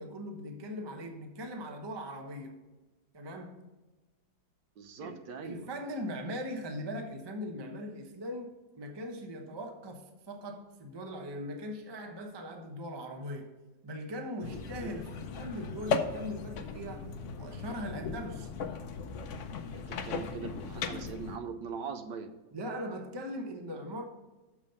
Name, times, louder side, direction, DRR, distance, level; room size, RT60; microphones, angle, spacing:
voice 1, 0.0-2.6 3.1-3.6 5.0-5.2 5.4-13.5 13.8-18.5 22.5-24.0, equal, 45° right, 0.3 m, -40 dB
voice 2, 4.8-5.7 14.5-15.0 19.7-22.3, right 5 dB, 70° right, 1.3 m, -41 dB
sound 1, 14.4-21.4, left 5 dB, 85° left, 0.6 m, -37 dB
6.5 x 6.0 x 5.4 m
omnidirectional pair, 2.1 m